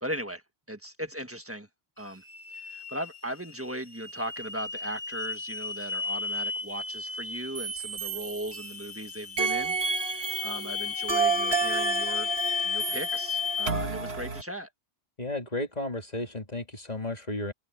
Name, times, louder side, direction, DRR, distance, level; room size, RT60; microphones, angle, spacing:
voice 1, 0.0-1.7 2.0-2.2 2.5-12.3 12.6-14.7, equal, 10° right, 1.5 m, -38 dB
sound 1, 2.0-13.7, left 6 dB, 85° left, 3.0 m, -35 dB
sound 2, 7.5-8.9 9.4-14.4, right 5 dB, 65° right, 2.1 m, -30 dB
voice 2, 15.2-17.5, left 2 dB, 35° left, 2.7 m, -33 dB
omnidirectional pair, 1.1 m